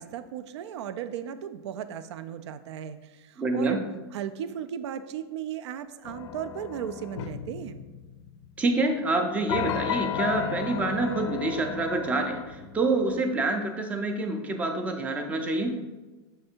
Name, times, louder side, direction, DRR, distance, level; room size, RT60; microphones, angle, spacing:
voice 1, 0.0-3.8 4.1-7.8, right 9 dB, 85° right, 12 dB, 0.4 m, -36 dB
voice 2, 3.4-3.8 8.6-15.8, right 2 dB, 10° right, 4 dB, 0.4 m, -27 dB
sound 1, 6.0-8.4 9.5-13.1, left 10 dB, 80° left, 0.4 m, -33 dB
6.5 x 3.3 x 4.4 m, 1.2 s
supercardioid pair, 165°, 14 cm